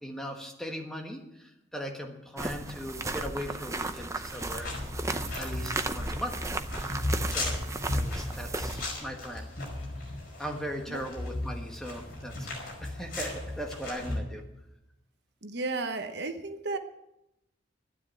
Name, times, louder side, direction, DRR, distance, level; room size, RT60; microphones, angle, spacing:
voice 1, 0.0-4.7 5.4-6.3 7.3-7.6 7.9-9.5 10.4-12.5 12.8-14.4, equal, ahead, 2 dB, 1.5 m, -38 dB
sound 1, 2.4-8.9, right 2 dB, 15° right, 0.6 m, -35 dB
sound 2, 4.3-14.2, left 2 dB, 50° left, 5.1 m, -35 dB
voice 2, 15.4-16.8, right 3 dB, 55° right, 7 dB, 1.0 m, -33 dB
12.0 x 9.8 x 8.3 m, 0.89 s
head